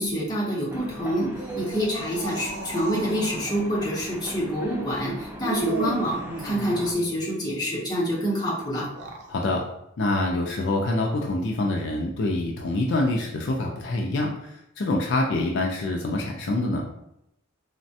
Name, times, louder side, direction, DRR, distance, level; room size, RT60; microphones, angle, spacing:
voice 1, 0.0-8.8, equal, 20° left, -5 dB, 0.8 m, -27 dB
sound 1, 0.7-6.9, equal, 10° right, 0.4 m, -40 dB
sound 2, 1.2-3.5 5.4-7.2 8.8-9.3, right 2 dB, 60° right, 0.5 m, -35 dB
voice 2, 9.3-9.6 10.0-16.9, left 2 dB, 60° left, 0 dB, 0.4 m, -26 dB
3.3 x 2.1 x 2.7 m, 0.80 s
head